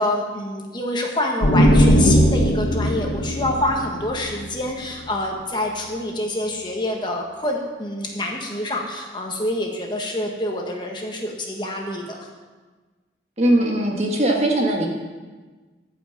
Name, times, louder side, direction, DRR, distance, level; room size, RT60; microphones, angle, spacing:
voice 1, 0.0-12.3, left 1 dB, 25° left, 0 dB, 1.3 m, -26 dB
sound 1, 1.4-5.0, equal, 80° left, 1.2 m, -18 dB
voice 2, 13.4-14.9, right 1 dB, 35° right, 0 dB, 1.5 m, -20 dB
13.5 x 5.7 x 7.3 m, 1.3 s
head